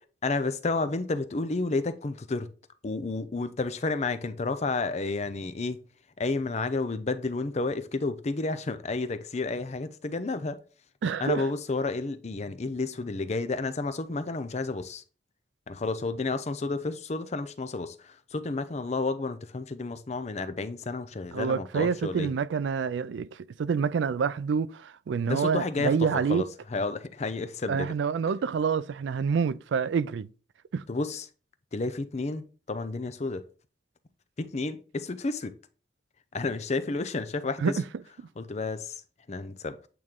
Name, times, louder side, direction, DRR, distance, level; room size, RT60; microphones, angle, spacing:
voice 1, 0.2-2.5 2.8-5.8 6.2-10.6 11.2-15.0 15.7-22.3 25.2-27.9 30.9-31.3 31.7-33.4 34.4-35.5 36.3-37.8 38.4-39.0 39.3-39.8, left 3 dB, 40° left, 0.5 m, -31 dB
voice 2, 11.0-11.4 21.3-23.3 23.6-26.4 27.7-30.3 30.7-30.8 37.6-37.7, right 6 dB, 90° right, 0.4 m, -27 dB
8.6 x 3.1 x 3.6 m
head